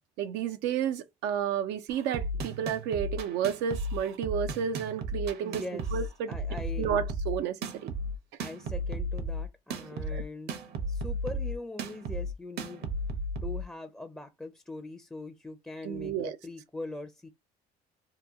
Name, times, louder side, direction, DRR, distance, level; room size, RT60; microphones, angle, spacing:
voice 1, 0.2-5.6 5.9-6.3 6.8-7.6 7.8-7.9 10.1-10.2 15.8-16.4, right 8 dB, 85° right, 0.4 m, -31 dB
sound 1, 1.9-13.6, equal, 70° right, 0.9 m, -34 dB
voice 2, 5.4-6.0 6.3-7.0 8.4-10.6 10.9-12.9 13.4-17.3, left 2 dB, 5° left, 0.4 m, -41 dB
2.9 x 2.2 x 3.4 m
cardioid pair, 110°, 17 cm